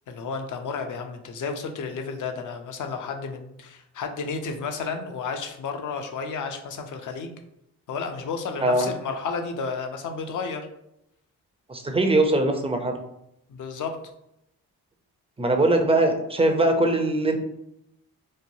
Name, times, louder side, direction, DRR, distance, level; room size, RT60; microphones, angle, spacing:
voice 1, 0.1-7.3 7.9-10.7 13.5-14.0, left 5 dB, 50° left, 5 dB, 0.6 m, -32 dB
voice 2, 11.7-13.0 15.4-17.4, right 2 dB, 15° right, 4 dB, 0.5 m, -21 dB
3.1 x 2.2 x 2.7 m, 0.82 s
supercardioid pair, 50°, 39 cm